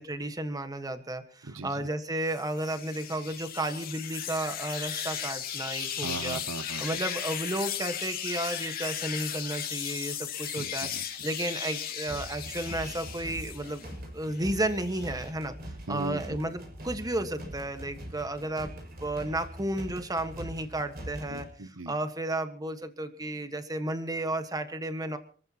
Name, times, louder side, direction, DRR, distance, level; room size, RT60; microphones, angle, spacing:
voice 1, 0.0-6.4 6.8-10.9 11.2-13.8 14.1-15.5 15.9-21.5 21.9-25.2, right 1 dB, 20° right, 8 dB, 1.5 m, -33 dB
voice 2, 1.4-1.9 6.0-6.8 10.6-11.3 15.9-16.2 21.3-22.0, right 2 dB, 90° right, 14 dB, 1.1 m, -38 dB
sound 1, 2.3-13.9 14.3-15.3, left 9 dB, 50° left, 2.6 m, -36 dB
sound 2, 12.1-21.5, equal, 50° right, 5.8 m, -42 dB
27.0 x 14.5 x 3.0 m, 0.42 s
head